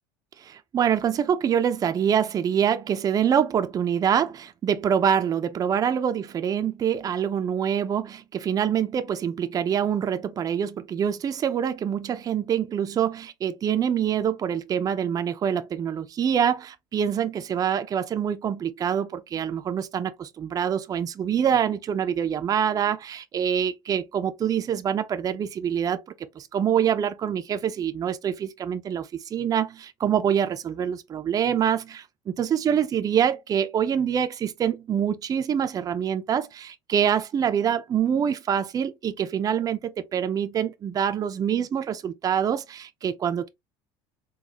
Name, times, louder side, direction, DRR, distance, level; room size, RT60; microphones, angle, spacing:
voice 1, 0.4-43.5, right 8 dB, 30° right, 0.5 m, -25 dB
4.0 x 2.2 x 2.8 m
supercardioid pair, 95°, 12 cm